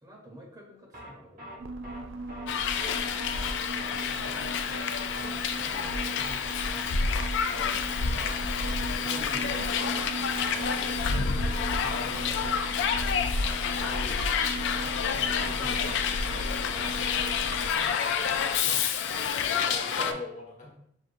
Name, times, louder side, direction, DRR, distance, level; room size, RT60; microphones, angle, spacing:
voice 1, 0.0-1.7 4.2-7.0 11.0-12.8 15.0-17.5 17.8-18.3, right 1 dB, 20° right, -2 dB, 0.8 m, -50 dB
sound 1, 0.9-1.1 1.4-1.6 1.8-2.0 2.3-2.5 2.7-2.9 3.2-3.5 3.8-4.0 4.2-4.4 4.7-4.9 5.1-5.3 5.6-5.9 6.2-6.4 6.6-6.8 7.1-7.3 7.5-7.7 8.0-8.3 8.6-8.8 9.0-9.2 9.5-9.7 9.9-10.1 10.4-10.7 11.0-11.2 11.4-11.6 11.9-12.1 12.3-12.5 12.8-13.1 13.4-13.6 13.8-14.0 14.3-14.5 14.7-14.9 15.2-15.5 15.8-16.0 16.2-16.4 16.7-16.9 17.1-17.3 17.6-17.9 18.2-18.4 18.6-18.8 19.1-19.3 19.5-19.7 20.0-20.1, right 1 dB, 50° right, 0.8 m, -42 dB
sound 2, 1.6-17.7, right 1 dB, 75° right, 0.4 m, -38 dB
Hiss, 2.5-20.1, left 6 dB, 70° left, 0.3 m, -29 dB
voice 2, 9.0-10.1 11.1-11.6 18.6-18.8 19.6-20.7, left 2 dB, 45° left, -3 dB, 1.1 m, -41 dB
6.4 x 2.4 x 2.5 m, 0.71 s
head